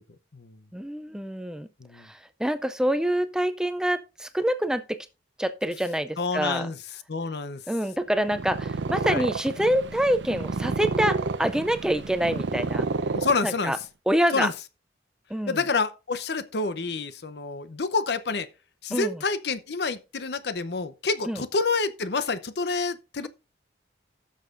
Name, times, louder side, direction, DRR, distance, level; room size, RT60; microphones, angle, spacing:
voice 1, 0.7-1.7 2.0-5.0 5.4-6.7 7.7-12.8 13.4-13.8 14.1-14.5 15.3-15.6 18.9-19.2 21.3-21.4, equal, 5° right, 0.3 m, -26 dB
voice 2, 6.2-6.8 7.1-7.6 9.1-9.3 13.1-13.8 14.3-14.5 15.5-18.5 18.8-23.3, left 4 dB, 70° left, 0.7 m, -28 dB
Purr, 8.1-13.8, right 3 dB, 85° right, 0.6 m, -30 dB
15.5 x 6.5 x 2.5 m
head